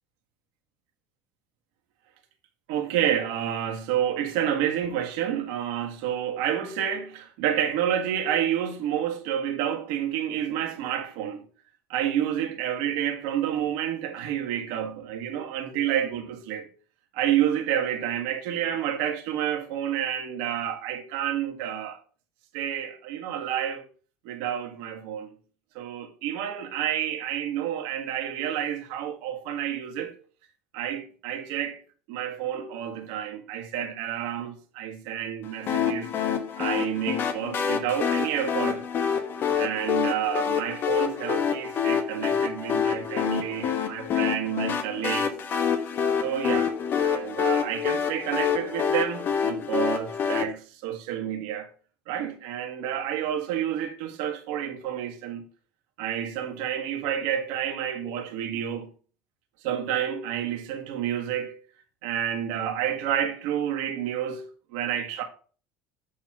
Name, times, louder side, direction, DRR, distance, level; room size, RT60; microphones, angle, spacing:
voice 1, 2.7-11.4 11.9-16.7 17.1-22.0 22.5-23.9 24.2-25.3 25.7-30.1 30.7-31.8 32.1-36.1 36.6-38.8 39.5-45.3 46.2-51.7 52.1-55.5 56.0-58.9 59.6-61.6 62.0-65.2, right 10 dB, 75° right, 1.6 m, -29 dB
sound 1, 35.7-50.4, left 7 dB, 45° left, 1.2 m, -27 dB
7.5 x 4.0 x 6.0 m
supercardioid pair, 110°, 5 cm